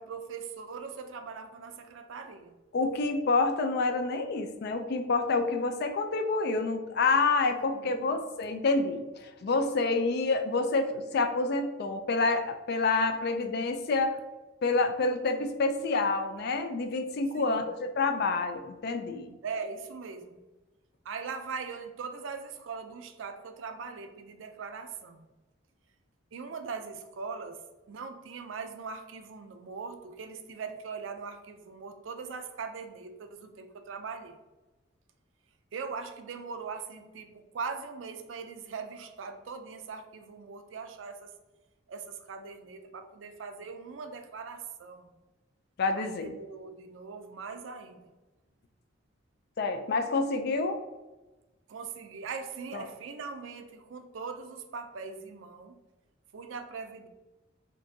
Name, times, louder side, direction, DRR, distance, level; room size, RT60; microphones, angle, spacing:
voice 1, 0.0-2.6 7.7-8.1 17.3-17.7 19.4-20.4 21.0-25.3 26.3-27.6 27.9-34.4 35.7-41.3 41.9-45.1 46.0-48.1 51.7-55.8 56.3-57.1, right 5 dB, 85° right, 8 dB, 0.4 m, -41 dB
voice 2, 2.7-14.2 14.6-19.3 45.8-46.3 49.6-50.8 52.7-52.9, left 3 dB, 55° left, 7 dB, 0.4 m, -28 dB
4.4 x 2.5 x 2.6 m, 1.1 s
head